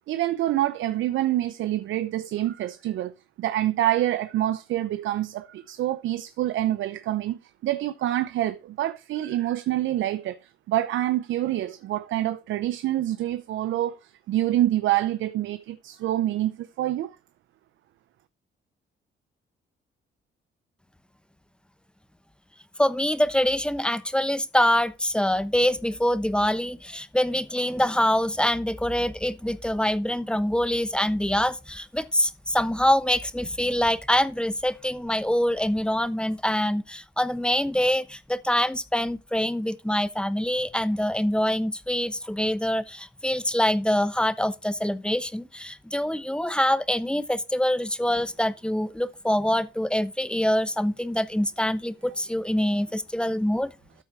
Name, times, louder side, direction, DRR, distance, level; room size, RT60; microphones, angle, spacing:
voice 1, 0.1-3.1 3.4-10.4 10.7-17.1, right 13 dB, 75° right, 0.7 m, -26 dB
voice 2, 22.8-53.7, left 1 dB, 5° left, 1.0 m, -25 dB
13.0 x 4.5 x 4.8 m
cardioid pair, 90°, 20 cm